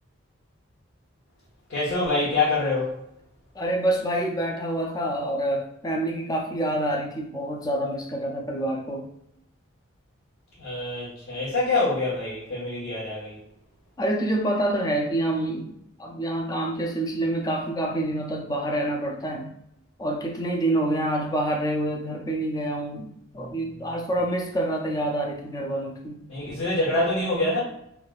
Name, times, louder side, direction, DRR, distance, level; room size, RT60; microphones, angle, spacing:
voice 1, 1.7-3.0 10.6-13.4 23.3-23.5 26.3-27.6, left 2 dB, 75° left, -10 dB, 1.2 m, -25 dB
voice 2, 3.6-9.1 14.0-19.5 20.0-26.2, right 1 dB, 15° left, 1 dB, 0.3 m, -27 dB
3.4 x 2.3 x 2.3 m, 0.77 s
head